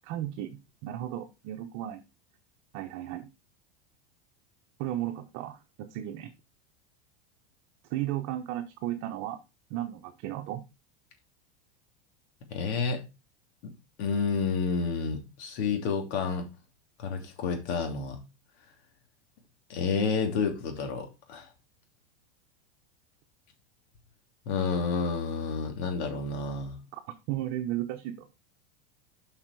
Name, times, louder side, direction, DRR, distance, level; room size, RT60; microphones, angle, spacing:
voice 1, 0.0-2.0 2.7-3.3 4.8-6.3 7.9-9.4 9.7-10.6 26.9-27.0 27.3-28.3, right 13 dB, 50° right, 4 dB, 1.1 m, -34 dB
voice 2, 12.5-13.0 14.0-16.5 17.0-18.2 19.7-21.5 24.5-26.8, left 5 dB, 70° left, 3 dB, 3.0 m, -30 dB
7.2 x 5.7 x 4.8 m, 0.27 s
supercardioid pair, 140°, 34 cm